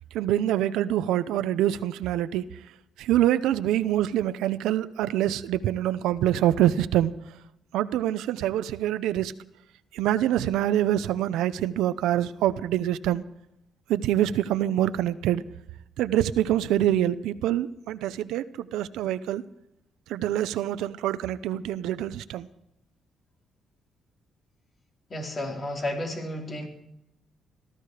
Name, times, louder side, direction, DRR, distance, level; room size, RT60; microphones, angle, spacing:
voice 1, 0.1-2.5 3.0-7.1 7.7-9.3 9.9-13.2 13.9-15.4 16.0-19.4 20.1-22.5, right 12 dB, 90° right, 14 dB, 0.7 m, -25 dB
voice 2, 25.1-26.7, left 1 dB, 40° left, 1 dB, 4.6 m, -32 dB
18.0 x 14.5 x 5.0 m, 0.81 s
cardioid pair, 90°, 0 cm